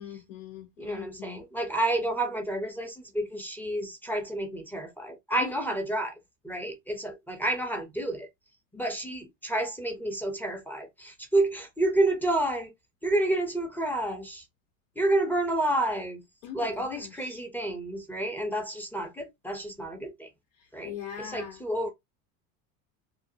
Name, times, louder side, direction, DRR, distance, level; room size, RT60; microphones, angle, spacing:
voice 1, 0.0-1.4 5.4-5.7 16.4-17.4 20.6-21.6, left 9 dB, 85° left, 0.6 m, -42 dB
voice 2, 0.8-6.1 6.4-8.3 8.7-12.7 13.0-14.4 15.0-16.2 16.5-20.3 20.7-21.9, right 1 dB, 5° left, 0.5 m, -29 dB
2.6 x 2.0 x 2.6 m
supercardioid pair, 105°, 40 cm